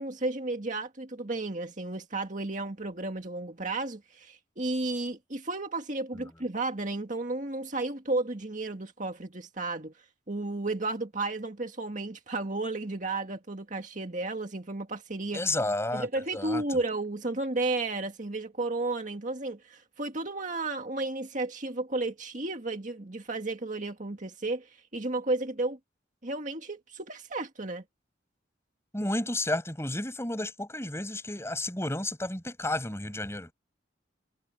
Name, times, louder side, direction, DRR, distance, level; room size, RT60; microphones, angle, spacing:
voice 1, 0.0-9.9 10.3-15.4 15.9-25.8 26.2-27.8, right 2 dB, 40° right, 1.9 m, -33 dB
voice 2, 15.3-16.8 28.9-33.5, left 1 dB, 15° left, 5.6 m, -32 dB
head